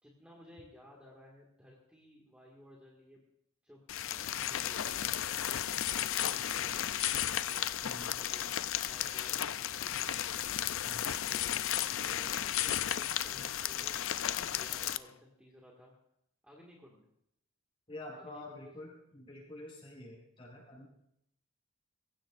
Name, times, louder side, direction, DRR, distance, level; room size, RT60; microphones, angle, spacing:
voice 1, 0.0-3.2 3.6-3.8 4.1-6.9 7.4-8.4 8.9-10.1 11.3-11.6 11.9-15.9 16.4-17.1 18.2-18.7, equal, 5° right, -4 dB, 1.9 m, -57 dB
sound 1, 3.9-15.0, left 11 dB, 65° left, 0.4 m, -34 dB
voice 2, 7.8-8.2 10.8-11.1 17.9-20.9, left 1 dB, 25° left, -4 dB, 6.7 m, -48 dB
22.5 x 16.5 x 2.5 m, 0.76 s
head